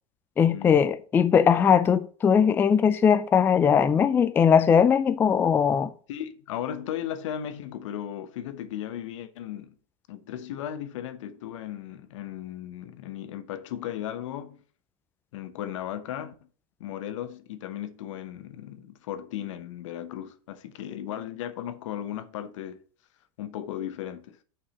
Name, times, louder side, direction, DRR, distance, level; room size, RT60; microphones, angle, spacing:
voice 1, 0.4-5.9, left 7 dB, 15° left, 0.3 m, -20 dB
voice 2, 6.1-9.7 10.1-14.6 15.3-16.3 16.8-22.8 23.4-24.4, left 11 dB, 80° left, 0.9 m, -36 dB
5.9 x 4.7 x 6.3 m
supercardioid pair, 140°, 16 cm